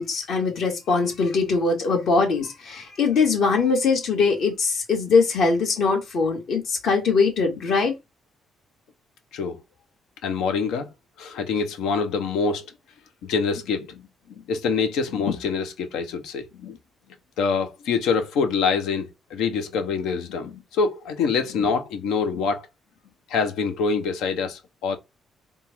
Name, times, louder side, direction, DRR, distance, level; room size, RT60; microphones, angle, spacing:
voice 1, 0.0-7.9, left 4 dB, 70° left, 1.9 m, -22 dB
voice 2, 10.2-10.9 11.2-12.7 13.3-14.0 14.4-16.8 17.4-22.7 23.3-25.0, left 5 dB, 90° left, 0.9 m, -25 dB
3.7 x 2.5 x 4.5 m
cardioid pair, 90°, 0 cm